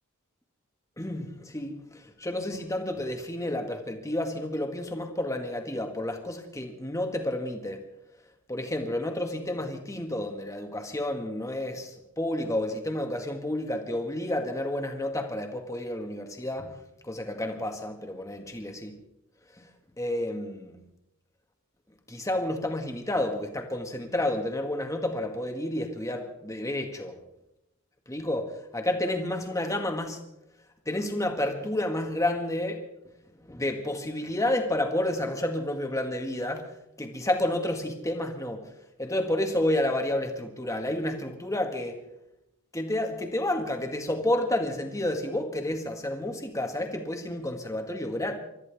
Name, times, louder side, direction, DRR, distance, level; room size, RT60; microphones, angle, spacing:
voice 1, 1.0-7.8 8.5-16.8 17.0-19.0 19.6-19.7 20.0-20.7 22.1-27.2 28.1-30.2 30.9-32.8 33.4-36.7 37.0-38.7 39.0-42.0 42.7-48.4, left 1 dB, 15° left, 1.9 m, -30 dB
29.5 x 14.0 x 3.6 m
head